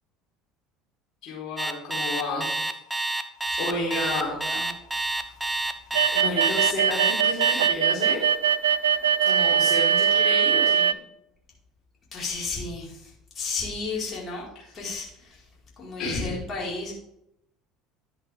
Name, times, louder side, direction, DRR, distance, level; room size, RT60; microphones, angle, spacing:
voice 1, 1.2-2.5 3.6-4.3 6.1-8.3 9.2-10.9 16.0-16.4, left 2 dB, 50° left, -5 dB, 4.3 m, -31 dB
Alarm, 1.6-7.7, right 2 dB, 10° right, 1.0 m, -28 dB
voice 2, 3.7-4.7 9.3-9.6 12.1-14.5 14.7-15.5 15.8-16.9, left 3 dB, 35° left, -4 dB, 4.9 m, -33 dB
sound 1, 5.9-10.9, right 8 dB, 75° right, 0.3 m, -21 dB
11.5 x 10.0 x 3.6 m, 0.79 s
figure-of-eight pair, 65°, 0 cm